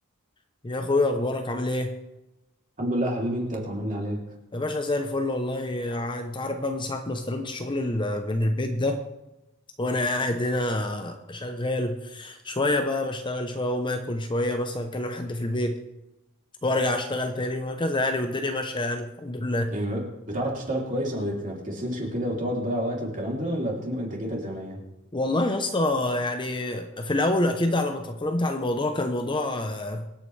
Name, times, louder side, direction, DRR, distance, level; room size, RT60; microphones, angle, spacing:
voice 1, 0.6-1.9 4.5-9.0 9.8-15.8 16.6-19.7 25.1-30.1, left 2 dB, 20° left, 6 dB, 0.8 m, -27 dB
voice 2, 2.8-4.2 19.7-24.8, equal, 35° right, -1 dB, 3.2 m, -29 dB
25.5 x 8.7 x 3.3 m, 0.97 s
head